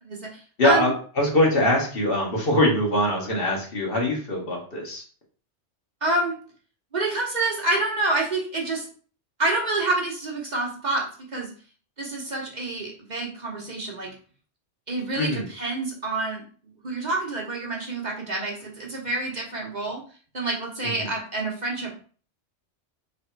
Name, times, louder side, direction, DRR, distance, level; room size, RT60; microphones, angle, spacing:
voice 1, 0.0-0.9 6.0-6.3 6.9-8.9 9.4-11.5 12.0-14.1 14.9-16.4 16.8-20.0 20.3-21.9, right 2 dB, 40° right, -2 dB, 1.0 m, -27 dB
voice 2, 0.6-5.0 15.2-15.5 20.8-21.1, left 1 dB, 55° left, -1 dB, 1.4 m, -23 dB
3.4 x 3.3 x 4.4 m, 0.42 s
omnidirectional pair, 1.2 m